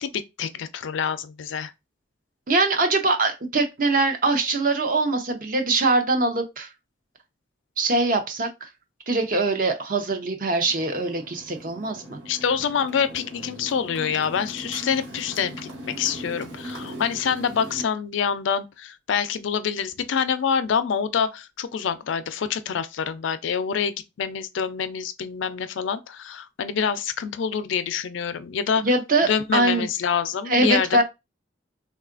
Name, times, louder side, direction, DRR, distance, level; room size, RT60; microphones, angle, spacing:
voice 1, 0.0-1.7 12.3-28.8 29.2-31.0, left 7 dB, 80° left, 0.4 m, -26 dB
voice 2, 2.5-6.7 7.8-8.7 9.1-12.2 28.8-29.9 30.5-31.0, right 2 dB, 45° right, 0.6 m, -22 dB
Motorcycle, 10.6-17.9, right 1 dB, 85° right, 1.5 m, -39 dB
3.6 x 2.3 x 2.4 m
head